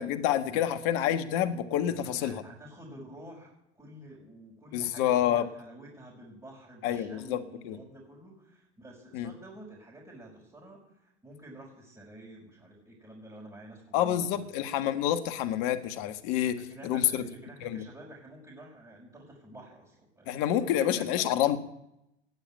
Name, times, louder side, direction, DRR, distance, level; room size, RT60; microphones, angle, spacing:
voice 1, 0.0-2.4 4.7-5.4 6.8-7.4 7.6-7.8 9.1-9.3 13.9-17.2 17.6-17.8 20.3-21.6, left 11 dB, 55° left, 9 dB, 1.6 m, -28 dB
voice 2, 1.9-14.5 16.5-20.7 21.0-21.3, right 1 dB, 10° right, -5 dB, 5.8 m, -49 dB
19.0 x 7.2 x 9.0 m, 0.83 s
figure-of-eight pair, 80°, 33 cm